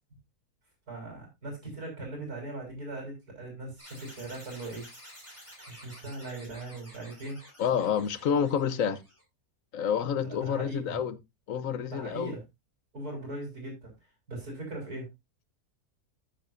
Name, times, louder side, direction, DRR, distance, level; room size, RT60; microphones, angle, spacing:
voice 1, 0.9-4.9 5.7-7.4 10.2-11.0 11.9-12.4 12.9-13.9 14.3-15.1, right 2 dB, 70° right, 4.6 m, -39 dB
sound 1, 3.8-9.2, equal, 10° right, 5.4 m, -51 dB
voice 2, 7.6-9.0 9.7-11.2 11.5-12.3, left 7 dB, 65° left, 1.2 m, -28 dB
13.5 x 7.5 x 2.6 m
omnidirectional pair, 1.6 m